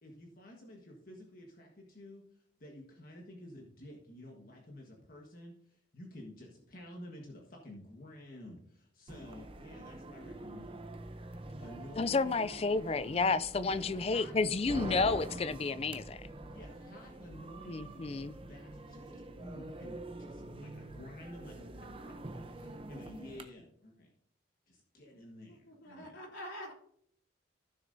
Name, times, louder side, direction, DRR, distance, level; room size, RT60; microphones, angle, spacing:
voice 1, 0.0-10.8 11.6-12.4 13.6-14.3 16.5-24.1 24.7-26.2, left 1 dB, 50° left, 1.5 m, -51 dB
sound 1, 9.1-23.4, right 2 dB, 30° right, 0.6 m, -46 dB
voice 2, 12.0-16.2 17.7-18.3, left 4 dB, 30° left, 0.4 m, -31 dB
voice 3, 25.5-26.7, equal, 80° left, 3.3 m, -46 dB
15.0 x 6.6 x 2.7 m
head